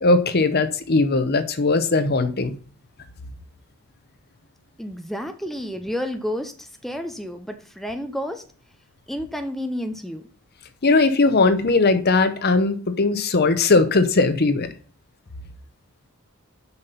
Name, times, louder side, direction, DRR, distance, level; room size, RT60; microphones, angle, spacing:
voice 1, 0.0-2.6 10.8-14.7, left 3 dB, 45° left, 0.8 m, -19 dB
voice 2, 4.8-8.4 9.1-10.3, equal, ahead, 0.6 m, -30 dB
6.8 x 5.8 x 5.7 m
head